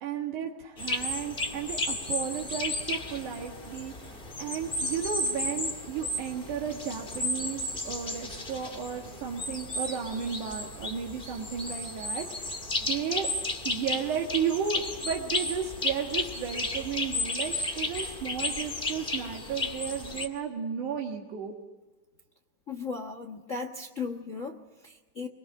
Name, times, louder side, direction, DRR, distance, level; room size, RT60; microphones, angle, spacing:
voice 1, 0.0-13.3 13.6-21.5, right 7 dB, 75° right, 0 dB, 3.3 m, -34 dB
sound 1, 0.8-20.3, left 2 dB, 20° left, 2.0 m, -33 dB
voice 2, 22.7-25.3, left 4 dB, 60° left, 6 dB, 0.8 m, -37 dB
25.5 x 22.0 x 7.5 m, 1.2 s
omnidirectional pair, 3.6 m